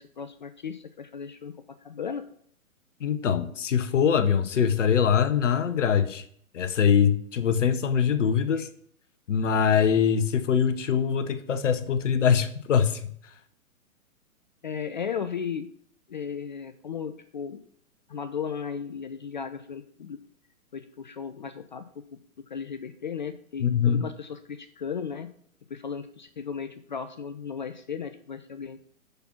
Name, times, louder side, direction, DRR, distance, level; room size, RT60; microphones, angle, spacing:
voice 1, 0.0-1.5 1.8-2.2 8.5-8.7 14.6-15.7 16.1-17.6 18.1-20.2 20.7-22.0 22.5-25.3 25.7-28.8, left 7 dB, 35° left, 10 dB, 0.4 m, -35 dB
voice 2, 3.0-6.2 6.5-8.7 9.3-13.1 23.6-24.0, left 7 dB, 60° left, 11 dB, 0.9 m, -23 dB
6.8 x 5.9 x 5.6 m, 0.63 s
figure-of-eight pair, 120°, 43 cm